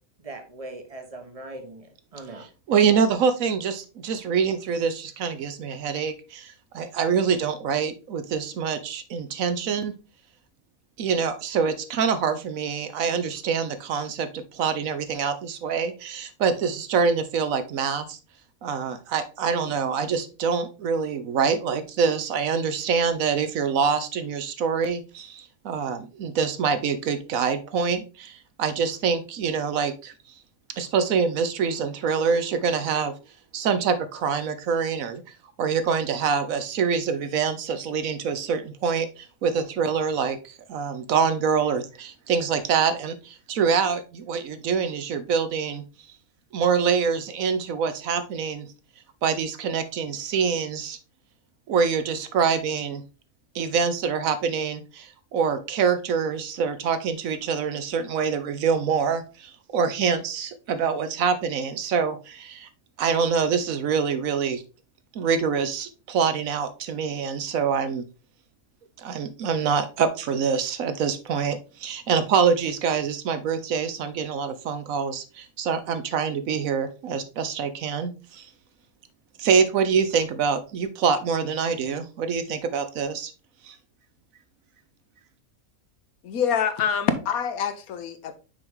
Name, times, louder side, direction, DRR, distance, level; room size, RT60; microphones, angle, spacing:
voice 1, 0.2-2.4, right 2 dB, 30° right, 1.0 m, -40 dB
voice 2, 2.4-9.9 11.0-18.2 18.6-30.1 30.8-33.2 33.5-35.2 35.6-45.8 46.5-48.7 49.2-51.0 51.7-53.0 53.5-62.7 63.0-64.6 65.1-68.0 69.0-78.5 79.4-83.3 83.6-83.8, right 6 dB, 70° right, 1.2 m, -25 dB
voice 3, 86.2-88.3, left 7 dB, 80° left, 1.2 m, -25 dB
6.3 x 4.6 x 3.6 m
omnidirectional pair, 1.5 m